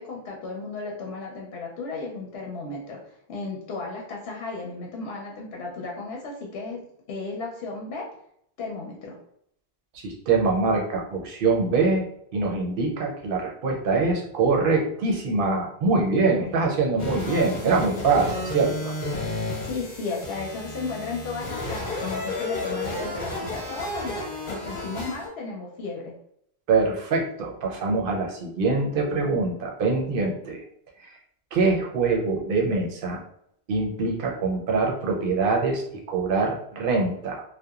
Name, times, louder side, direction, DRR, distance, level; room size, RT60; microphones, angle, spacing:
voice 1, 0.0-3.0 3.3-8.1 8.6-9.2 16.4-16.6 19.6-24.2 24.5-26.1, left 3 dB, 80° left, -1 dB, 0.8 m, -34 dB
voice 2, 9.9-12.0 12.3-18.9 26.7-30.6 31.0-31.2 31.5-33.2 33.7-37.4, right 3 dB, 65° right, 0 dB, 0.7 m, -24 dB
sound 1, 17.0-25.3, left 2 dB, 55° left, 1.0 m, -32 dB
2.8 x 2.1 x 2.3 m, 0.70 s
omnidirectional pair, 1.0 m